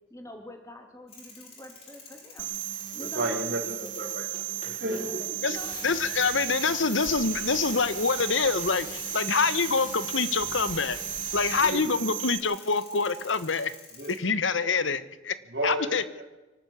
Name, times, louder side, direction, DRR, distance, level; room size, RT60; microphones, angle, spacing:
voice 1, 0.1-2.5 2.9-3.9 4.8-6.2, left 1 dB, 15° left, 4 dB, 3.2 m, -46 dB
sound 1, 1.1-14.2, left 3 dB, 35° left, 5.5 m, -47 dB
sound 2, 2.4-12.4, right 13 dB, 75° right, 1.5 m, -35 dB
voice 2, 3.0-5.2 5.5-5.6 11.6-12.0 14.0-14.2 14.6-14.7 15.5-16.2, right 1 dB, 55° right, -3 dB, 3.3 m, -33 dB
sound 3, 5.5-11.7, left 3 dB, 50° left, 7.2 m, -42 dB
voice 3, 5.8-11.0 11.3-13.7 14.2-15.3 15.6-16.0, left 4 dB, 80° left, 15 dB, 1.2 m, -26 dB
24.0 x 12.5 x 8.6 m, 1.1 s
head